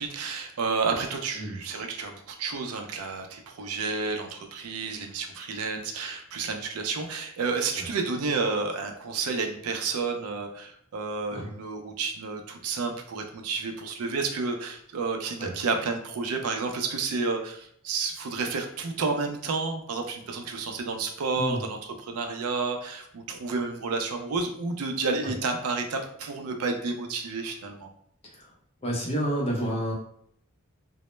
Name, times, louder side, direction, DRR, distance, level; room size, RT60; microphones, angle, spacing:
voice 1, 0.0-27.9, right 4 dB, 80° right, 4 dB, 0.4 m, -30 dB
voice 2, 28.8-29.9, equal, 25° left, -2 dB, 0.5 m, -29 dB
2.0 x 2.0 x 3.0 m, 0.66 s
head